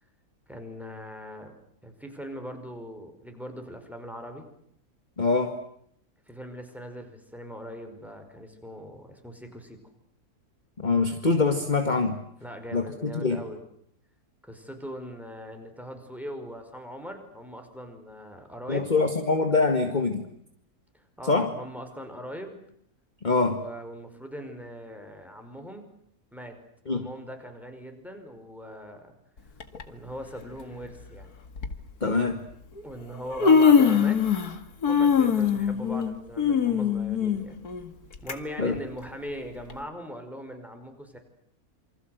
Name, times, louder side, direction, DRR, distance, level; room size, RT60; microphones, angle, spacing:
voice 1, 0.5-1.5 1.8-4.5 6.3-9.8 12.4-13.6 14.4-18.9 20.9-22.6 23.3-25.9 26.3-26.5 26.9-29.1 29.9-31.3 32.8-34.2 34.9-37.6 38.2-41.2, equal, ahead, 5 dB, 5.3 m, -40 dB
voice 2, 5.2-5.6 10.8-12.2 12.7-13.4 18.7-20.3 21.3-21.5 23.2-23.6 26.9-27.1 32.0-32.4 38.6-38.8, left 3 dB, 30° left, 6 dB, 2.1 m, -24 dB
Human voice, 29.6-29.8 30.9-31.0 31.6-31.7 32.8-32.9 33.1-34.6 34.8-38.3 38.7-38.8 39.7-39.8, left 6 dB, 85° left, 2.5 m, -22 dB
28.0 x 25.5 x 8.0 m, 0.70 s
omnidirectional pair, 1.6 m